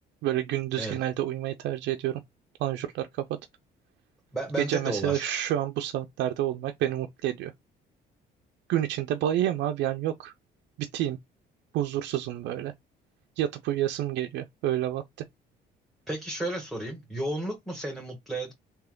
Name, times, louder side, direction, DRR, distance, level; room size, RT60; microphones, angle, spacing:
voice 1, 0.2-2.2 2.6-3.4 4.6-7.5 8.7-10.3 10.8-11.2 11.7-12.7 13.4-15.0, right 12 dB, 80° right, 0.4 m, -29 dB
voice 2, 4.3-5.3 16.1-18.5, right 1 dB, ahead, 1.3 m, -33 dB
3.3 x 2.9 x 3.7 m
cardioid pair, 100°, 18 cm